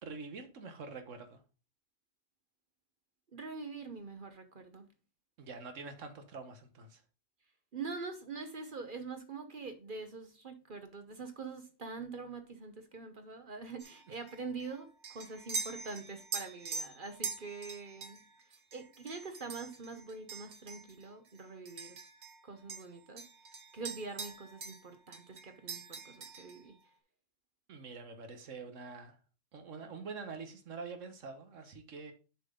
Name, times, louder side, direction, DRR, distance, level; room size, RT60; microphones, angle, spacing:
voice 1, 0.0-1.4 5.4-7.0 27.7-29.2 29.5-32.1, right 4 dB, 85° right, 1.5 m, -45 dB
voice 2, 3.3-4.9 7.7-18.2 18.7-22.0 22.4-23.3 23.7-26.8, right 4 dB, 45° right, 1.0 m, -44 dB
sound 1, 13.8-22.4 22.7-24.9 25.1-26.6, right 4 dB, 65° right, 1.4 m, -44 dB
7.4 x 5.7 x 3.7 m
omnidirectional pair, 1.3 m